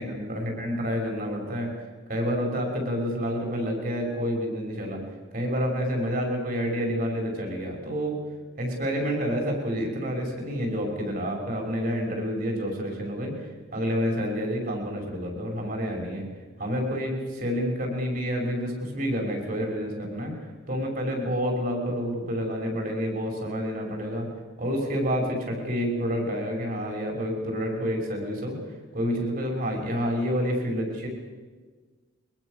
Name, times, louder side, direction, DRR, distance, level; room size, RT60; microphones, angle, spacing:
voice 1, 0.0-5.0 5.3-8.2 8.6-16.3 16.6-24.3 24.6-31.1, equal, 45° right, 2 dB, 6.1 m, -29 dB
23.0 x 21.5 x 6.8 m, 1.4 s
head